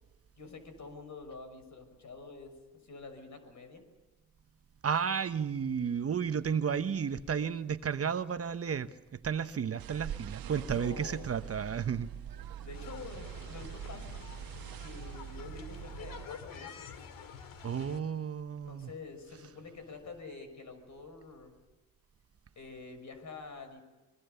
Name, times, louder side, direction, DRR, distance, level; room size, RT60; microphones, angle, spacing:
voice 1, 0.4-2.6 2.8-3.8 10.1-10.2 10.5-11.4 12.6-14.3 14.8-16.9 18.5-21.5 22.6-23.8, left 3 dB, 55° left, 6.3 m, -47 dB
voice 2, 4.8-12.1 17.6-18.9, right 7 dB, 40° right, 1.0 m, -32 dB
sound 1, 9.8-16.3, right 10 dB, 80° right, 1.3 m, -44 dB
sound 2, 12.7-18.0, left 6 dB, 70° left, 2.6 m, -48 dB
25.5 x 23.0 x 6.9 m
cardioid pair, 75°, 35 cm